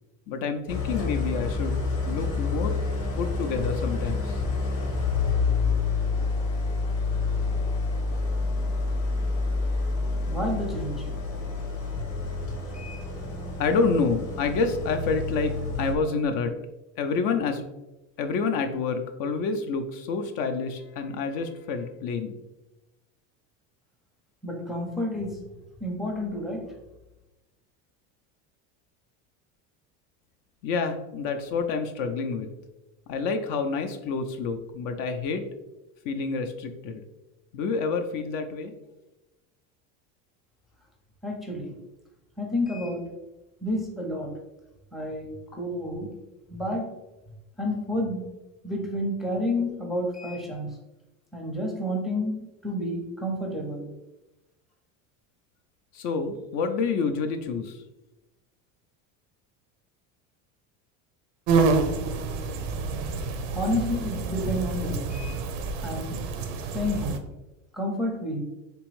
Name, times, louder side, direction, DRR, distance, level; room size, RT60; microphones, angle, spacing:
voice 1, 0.3-1.8 2.0-2.8 3.2-4.4 13.6-16.6 17.0-17.7 18.2-22.3 30.6-32.5 33.1-35.4 36.0-37.0 37.5-38.7 55.9-57.8, left 4 dB, 60° left, 6 dB, 0.5 m, -28 dB
Idling, 0.7-15.9, left 4 dB, 90° left, 1.0 m, -28 dB
voice 2, 10.3-11.1 12.7-13.0 24.4-25.4 25.8-26.7 41.2-41.7 42.4-43.1 43.6-44.4 44.9-46.2 46.5-46.9 47.6-48.3 48.6-50.7 51.3-53.9 63.5-65.4 65.8-66.3 66.7-67.3 67.7-68.4, left 1 dB, ahead, 0 dB, 0.5 m, -30 dB
sound 1, 61.5-67.2, right 4 dB, 85° right, 0.6 m, -28 dB
3.5 x 3.0 x 3.1 m, 1.0 s
supercardioid pair, 110°, 37 cm